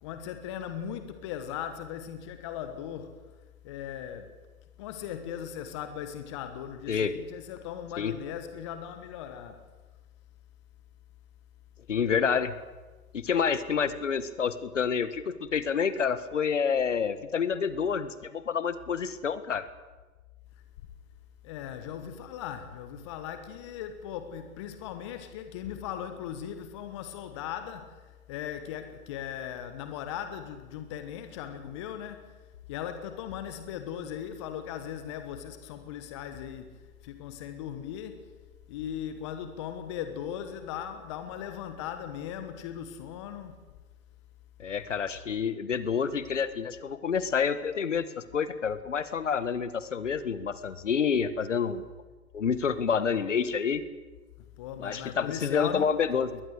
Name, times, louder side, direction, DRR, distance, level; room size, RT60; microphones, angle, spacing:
voice 1, 0.0-3.2 3.6-4.3 4.8-9.6 21.4-32.4 32.7-38.3 38.7-43.5 54.6-55.9, left 9 dB, 20° left, 9 dB, 1.3 m, -38 dB
voice 2, 11.9-12.5 13.1-19.7 44.6-51.8 52.3-53.8 54.8-56.4, left 6 dB, 55° left, 14 dB, 1.7 m, -28 dB
22.0 x 19.0 x 8.2 m, 1.2 s
figure-of-eight pair, 145°, 45 cm